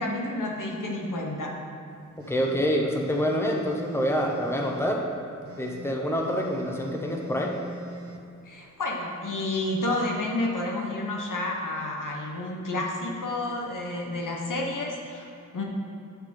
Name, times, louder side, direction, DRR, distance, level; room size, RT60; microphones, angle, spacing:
voice 1, 0.0-1.6 8.4-15.6, left 2 dB, 85° left, 0 dB, 1.1 m, -30 dB
sound 1, 2.2-5.0 5.4-8.2, equal, 50° right, 0.7 m, -43 dB
voice 2, 2.3-5.0 5.6-7.5, equal, 10° left, -1 dB, 0.9 m, -26 dB
9.6 x 3.6 x 6.2 m, 2.7 s
wide cardioid pair, 70°, 31 cm